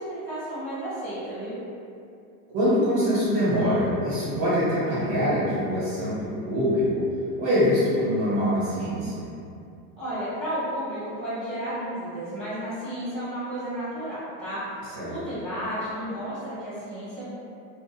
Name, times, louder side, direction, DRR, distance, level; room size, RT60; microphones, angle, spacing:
voice 1, 0.0-1.5 10.0-17.3, equal, 10° right, -18 dB, 0.5 m, -32 dB
voice 2, 2.5-7.0 7.4-9.3 14.9-15.1, equal, 55° right, -10 dB, 1.2 m, -24 dB
2.7 x 2.4 x 2.3 m, 2.5 s
supercardioid pair, 180°, 43 cm